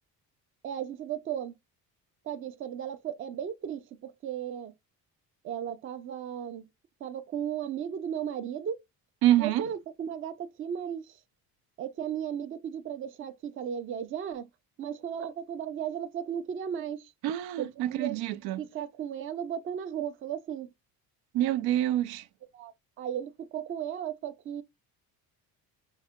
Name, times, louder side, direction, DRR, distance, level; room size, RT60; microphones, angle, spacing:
voice 1, 0.6-1.6 2.2-4.7 5.4-6.6 7.0-8.8 9.4-11.2 11.8-14.5 14.8-17.1 17.6-18.2 18.6-20.7 22.5-24.6, right 9 dB, 35° right, 0.5 m, -35 dB
voice 2, 9.2-9.7 17.2-18.6 21.3-22.2, right 13 dB, 80° right, 0.6 m, -26 dB
5.5 x 2.1 x 3.5 m
cardioid pair, 150°, 37 cm